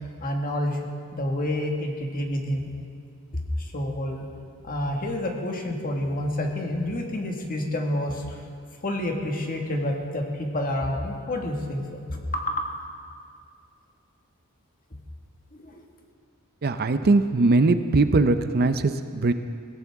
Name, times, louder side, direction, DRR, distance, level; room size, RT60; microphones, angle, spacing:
voice 1, 0.2-2.7 3.6-4.2 4.6-8.4 8.8-12.7 15.5-15.8, left 1 dB, 40° left, 1 dB, 1.8 m, -29 dB
voice 2, 16.6-19.3, right 3 dB, 45° right, 10 dB, 0.5 m, -21 dB
22.0 x 16.5 x 3.6 m, 2.3 s
head